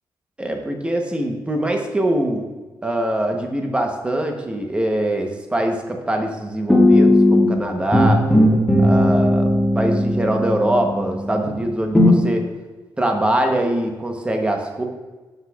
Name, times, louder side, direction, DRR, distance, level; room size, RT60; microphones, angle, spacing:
voice 1, 0.4-2.5 2.8-8.2 8.8-12.5 13.0-14.8, right 1 dB, 15° right, 3 dB, 0.8 m, -23 dB
sound 1, 6.7-7.6 7.9-11.5 11.9-12.2, left 1 dB, 10° left, 1.2 m, -16 dB
8.7 x 5.7 x 2.3 m, 1.2 s
cardioid pair, 115°, 8 cm